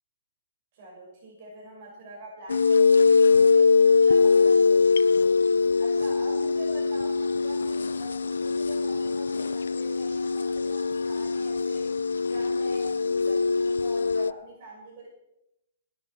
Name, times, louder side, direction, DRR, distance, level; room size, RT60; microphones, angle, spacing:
voice 1, 0.7-5.4 5.8-11.9 12.2-15.1, right 1 dB, 50° right, -3 dB, 6.0 m, -44 dB
sound 1, 2.5-14.3, left 4 dB, 75° left, 0.5 m, -22 dB
18.5 x 11.5 x 4.7 m, 0.85 s
figure-of-eight pair, 125°, 0 cm